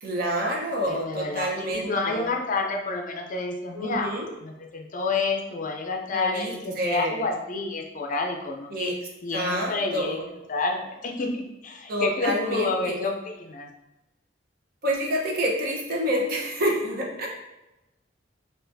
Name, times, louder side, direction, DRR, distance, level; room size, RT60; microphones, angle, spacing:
voice 1, 0.0-2.2 3.7-4.3 6.1-7.2 8.7-9.0 9.3-10.3 11.9-13.1 14.8-17.3, equal, 50° right, -1 dB, 0.9 m, -28 dB
voice 2, 0.9-4.1 4.4-8.9 9.2-10.2 10.5-13.7, left 3 dB, 45° left, 2 dB, 0.5 m, -29 dB
6.1 x 2.5 x 2.6 m, 0.99 s
head